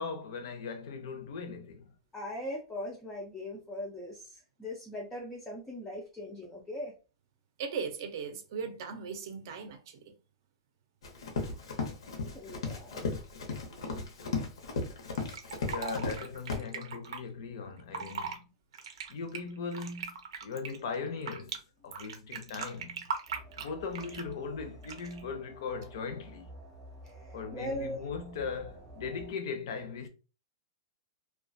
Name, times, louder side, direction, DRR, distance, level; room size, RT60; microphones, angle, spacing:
voice 1, 0.0-1.9 15.7-18.4 19.1-20.1 20.4-23.1 23.6-26.5 27.3-30.1, left 5 dB, 55° left, 0.5 m, -39 dB
voice 2, 2.1-6.9 11.4-11.9 12.3-13.0 27.0-28.0, left 1 dB, 5° left, 0.3 m, -40 dB
voice 3, 7.6-10.0, right 6 dB, 45° right, 0.5 m, -38 dB
Run, 11.0-16.2 16.5-16.6, left 4 dB, 85° left, 0.7 m, -35 dB
Fill (with liquid), 15.2-17.2 17.8-18.4 18.7-21.6 21.9-24.3 24.8-25.2, right 6 dB, 90° right, 0.6 m, -39 dB
sound 1, 23.3-29.3, equal, 15° right, 0.8 m, -51 dB
2.3 x 2.2 x 2.5 m
supercardioid pair, 175°, 3 cm